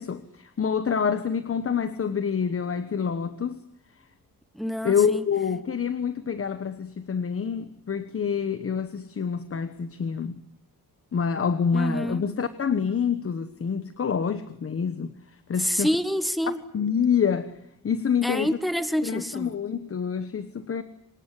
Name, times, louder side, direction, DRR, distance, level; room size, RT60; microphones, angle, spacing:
voice 1, 0.0-3.6 4.8-10.4 11.1-15.1 15.5-15.9 16.7-17.5 17.8-18.6 19.0-20.8, left 6 dB, 40° left, 1.2 m, -27 dB
voice 2, 4.5-5.2 11.7-12.2 15.6-16.6 18.2-19.5, equal, ahead, 1.3 m, -27 dB
25.0 x 20.5 x 9.9 m
wide cardioid pair, 155°, 36 cm